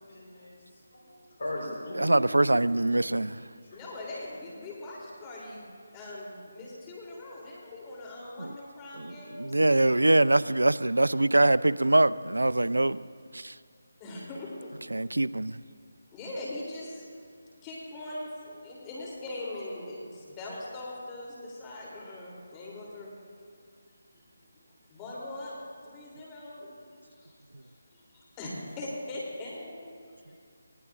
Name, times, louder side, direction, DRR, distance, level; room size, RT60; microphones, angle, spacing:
voice 1, 0.0-2.8 3.1-3.2 3.7-3.8, left 1 dB, 60° left, 4.1 m, -39 dB
voice 2, 1.9-3.5 8.4-8.5 9.0-13.0 13.3-13.6 14.9-15.6, right 2 dB, 80° right, 0.3 m, -24 dB
voice 3, 3.7-5.7 5.9-9.6 14.0-14.7 16.1-17.1 17.6-23.1 24.9-25.6 25.8-26.8 27.0-27.3 27.9-30.4, left 2 dB, 20° left, 3.0 m, -41 dB
20.0 x 15.5 x 2.5 m
figure-of-eight pair, 155°, 0 cm